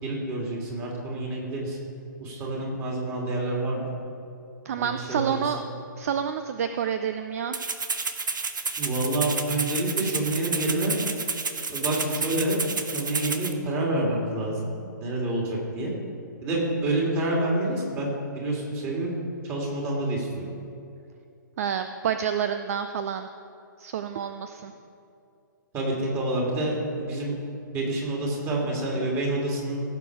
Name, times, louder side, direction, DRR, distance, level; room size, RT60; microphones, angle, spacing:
voice 1, 0.0-1.8 2.2-3.9 4.8-5.5 8.8-11.0 11.7-14.6 15.0-15.9 16.4-19.1 19.5-20.4 25.7-27.4 27.7-29.8, right 1 dB, 20° right, -3 dB, 3.0 m, -28 dB
voice 2, 4.6-5.6 6.0-7.6 21.6-23.3 23.8-24.7, right 8 dB, 45° right, 8 dB, 0.5 m, -28 dB
Rattle (instrument), 7.5-13.5, right 4 dB, 70° right, 1.0 m, -30 dB
16.5 x 6.8 x 4.9 m, 2.5 s
figure-of-eight pair, 125°, 11 cm